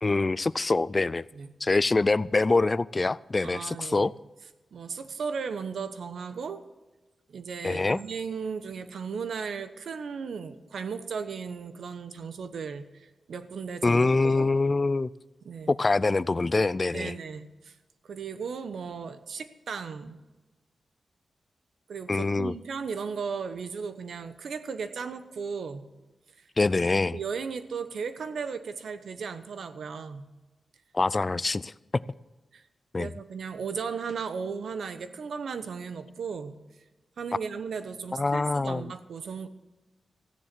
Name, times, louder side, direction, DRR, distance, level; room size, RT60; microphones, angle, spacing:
voice 1, 0.0-1.3 1.6-4.1 7.6-8.0 13.8-15.1 15.7-17.1 22.1-22.5 26.6-27.2 30.9-32.0 32.9-33.1 38.1-38.9, left 3 dB, 35° left, 0.3 m, -25 dB
voice 2, 3.4-4.1 4.7-6.6 7.3-14.5 15.4-15.8 16.9-17.7 18.0-20.2 21.9-25.9 26.4-26.5 27.1-30.3 32.5-32.6 33.0-36.6 37.2-39.5, right 5 dB, 80° right, 1.0 m, -36 dB
14.5 x 10.0 x 6.1 m
cardioid pair, 75°, 0 cm